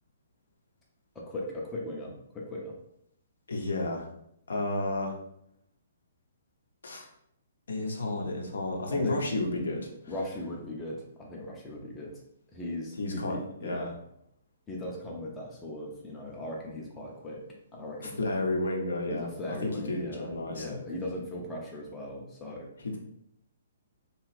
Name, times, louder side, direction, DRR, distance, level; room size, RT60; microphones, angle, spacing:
voice 1, 1.2-2.7 8.9-9.2 10.1-12.1 12.5-13.9 14.7-17.4 17.7-18.2 19.1-22.7, left 1 dB, 10° left, -3 dB, 0.5 m, -38 dB
voice 2, 3.5-4.1 4.5-5.1 6.8-7.1 7.7-9.9 13.0-13.9 18.0-20.8 22.8-23.0, left 2 dB, 65° left, 1 dB, 0.7 m, -32 dB
2.8 x 2.3 x 3.1 m, 0.73 s
figure-of-eight pair, 120°, 0 cm